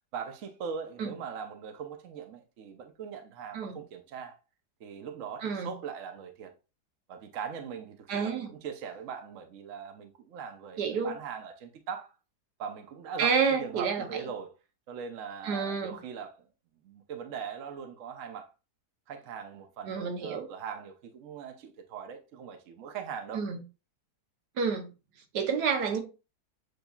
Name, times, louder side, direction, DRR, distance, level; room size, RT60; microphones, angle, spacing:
voice 1, 0.1-4.3 4.8-6.5 7.1-12.1 12.6-14.5 14.9-16.4 16.8-18.5 19.1-23.4, right 7 dB, 60° right, 1.0 m, -40 dB
voice 2, 5.4-5.7 8.1-8.5 10.8-11.1 13.2-14.1 15.4-16.0 19.9-20.5 23.3-23.6 24.6-24.9 25.3-26.0, right 5 dB, 80° right, 1.5 m, -29 dB
7.9 x 2.7 x 2.3 m
omnidirectional pair, 1.7 m